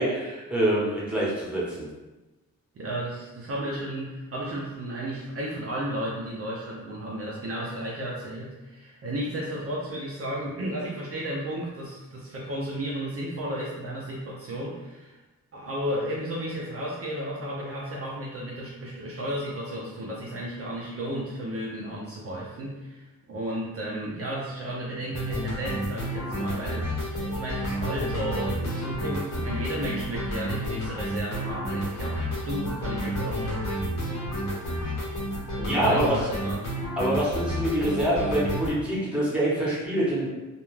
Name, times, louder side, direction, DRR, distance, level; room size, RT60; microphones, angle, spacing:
voice 1, 0.0-1.9 35.6-36.2 37.0-40.3, right 1 dB, 5° right, -7 dB, 0.9 m, -25 dB
voice 2, 2.7-15.2 15.5-33.8 34.5-34.7 35.5-36.7, right 1 dB, 45° right, -5 dB, 0.5 m, -33 dB
sound 1, 25.1-38.7, equal, 60° left, 0.8 m, -30 dB
2.4 x 2.2 x 3.1 m, 1.1 s
wide cardioid pair, 130°, 31 cm